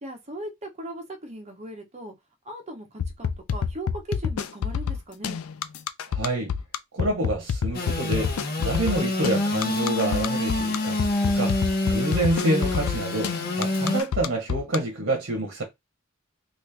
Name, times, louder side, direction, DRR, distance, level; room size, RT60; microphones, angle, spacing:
voice 1, 0.0-2.1 2.4-5.4, right 1 dB, 30° right, 0.9 m, -38 dB
sound 1, 3.0-14.8, left 7 dB, 85° left, 0.4 m, -27 dB
voice 2, 6.1-6.5 6.9-15.6, right 1 dB, 60° right, 1.0 m, -28 dB
Engine / Sawing, 7.7-14.0, left 2 dB, 45° left, 0.8 m, -27 dB
3.1 x 2.5 x 3.3 m
head